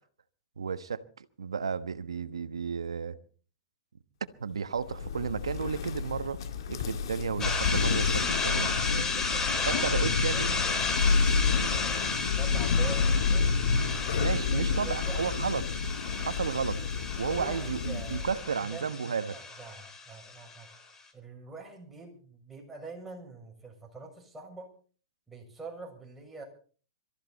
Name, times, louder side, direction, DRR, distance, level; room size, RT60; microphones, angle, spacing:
voice 1, 0.6-3.2 4.2-6.4 6.7-8.7 9.7-10.5 11.3-11.4 14.2-15.7 16.2-16.8 17.2-19.4, right 6 dB, 90° right, 1.2 m, -33 dB
Thunder, 4.8-18.5, left 5 dB, 65° left, 1.9 m, -29 dB
sound 1, 7.4-20.7, left 4 dB, 20° left, 3.9 m, -33 dB
voice 2, 8.7-13.6 14.5-15.3 17.3-20.7 21.1-24.7 25.3-26.4, right 3 dB, 5° right, 6.9 m, -45 dB
24.0 x 14.0 x 4.1 m
hypercardioid pair, 120°, 3 cm